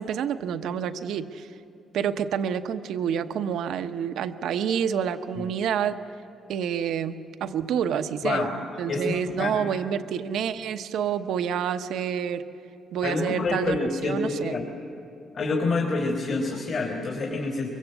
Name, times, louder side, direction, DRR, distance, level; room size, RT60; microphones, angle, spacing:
voice 1, 0.0-1.5 1.9-6.0 6.5-8.5 8.8-12.4 12.9-14.6, right 8 dB, 80° right, 9 dB, 0.9 m, -28 dB
voice 2, 8.2-8.5 8.9-9.7 13.0-14.7 15.3-17.7, left 3 dB, 55° left, 0 dB, 3.8 m, -27 dB
23.5 x 22.5 x 8.1 m, 2.7 s
cardioid pair, 90°, 0 cm